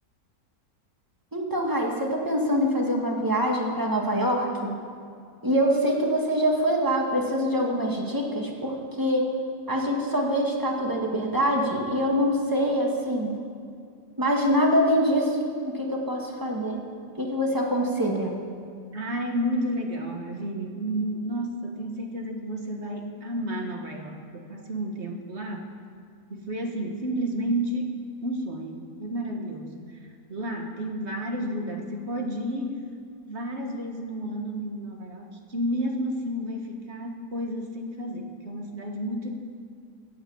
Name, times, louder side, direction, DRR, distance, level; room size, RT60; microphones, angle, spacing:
voice 1, 1.3-4.7 5.4-9.2 9.7-13.4 14.2-15.4 15.6-16.8 17.2-18.4, equal, 10° right, -1 dB, 2.0 m, -24 dB
voice 2, 18.9-25.7 26.3-27.9 28.2-32.8 33.3-39.3, equal, 45° right, 2 dB, 1.7 m, -31 dB
13.0 x 8.8 x 8.6 m, 2.4 s
omnidirectional pair, 1.8 m